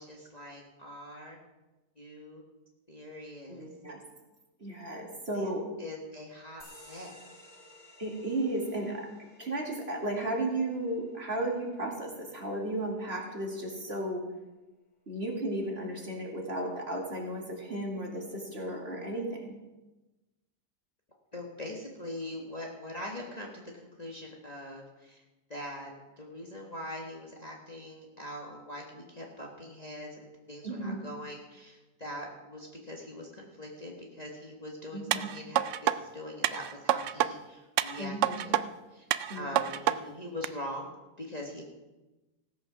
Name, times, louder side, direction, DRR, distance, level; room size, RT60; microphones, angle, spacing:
voice 1, 0.0-1.4 2.0-2.4 2.9-3.7 5.3-5.5 5.8-7.2 21.3-25.2 25.5-38.6 38.9-40.9 41.2-41.6, left 1 dB, 25° left, -1 dB, 1.6 m, -42 dB
voice 2, 3.5-4.0 4.6-5.6 8.0-9.1 9.4-14.2 15.1-19.5 30.6-31.0 34.9-35.3 38.0-38.5 39.3-39.6, right 1 dB, 35° right, -1 dB, 2.4 m, -34 dB
sound 1, 6.6-13.7, left 1 dB, 65° left, 5.2 m, -57 dB
sound 2, 35.1-36.0 36.4-37.3 37.8-38.6 39.1-40.0 40.4-40.5, right 11 dB, 75° right, 0.6 m, -27 dB
16.0 x 8.3 x 6.1 m, 1.1 s
omnidirectional pair, 1.8 m